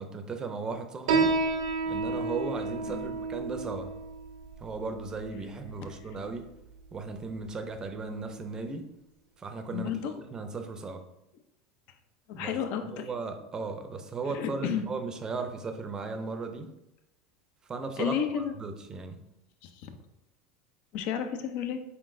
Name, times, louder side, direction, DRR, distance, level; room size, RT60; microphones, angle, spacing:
voice 1, 0.0-1.3 1.9-3.9 4.6-6.5 6.9-8.9 9.4-11.0 12.3-12.6 12.9-16.7 17.7-19.2, right 4 dB, 25° right, 7 dB, 0.5 m, -36 dB
Piano, 1.1-8.1, right 3 dB, 80° right, 0.5 m, -32 dB
voice 2, 9.7-10.1 12.3-13.1 14.2-14.8 18.0-18.5 19.6-19.9 20.9-21.8, left 8 dB, 60° left, 8 dB, 0.5 m, -32 dB
4.3 x 3.7 x 2.6 m, 0.86 s
supercardioid pair, 105°, 3 cm